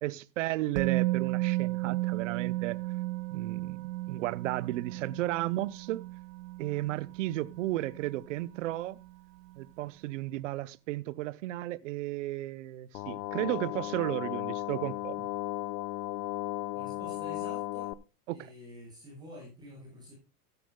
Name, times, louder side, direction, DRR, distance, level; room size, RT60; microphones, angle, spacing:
voice 1, 0.0-2.8 3.3-6.1 6.6-9.0 9.6-15.3 18.3-18.4, right 16 dB, 50° right, 0.7 m, -34 dB
Musical instrument, 0.8-8.7 8.9-9.1, right 19 dB, 85° right, 0.7 m, -34 dB
sound 1, 12.9-17.9, left 15 dB, 75° left, 1.0 m, -35 dB
voice 2, 16.7-17.9 18.3-20.1, equal, 10° right, 7.8 m, -48 dB
15.5 x 13.0 x 2.2 m
supercardioid pair, 175°, 47 cm